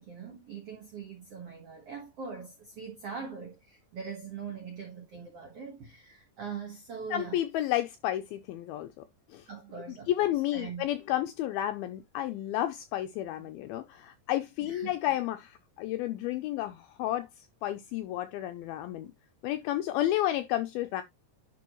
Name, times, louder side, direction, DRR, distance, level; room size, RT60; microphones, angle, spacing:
voice 1, 0.0-7.4 9.5-10.9 13.4-13.5 14.6-15.1, right 6 dB, 75° right, 1.3 m, -42 dB
voice 2, 7.1-9.0 9.3-9.5 10.1-19.1 19.4-21.0, left 13 dB, 85° left, 2.2 m, -31 dB
10.5 x 4.2 x 3.0 m
omnidirectional pair, 4.9 m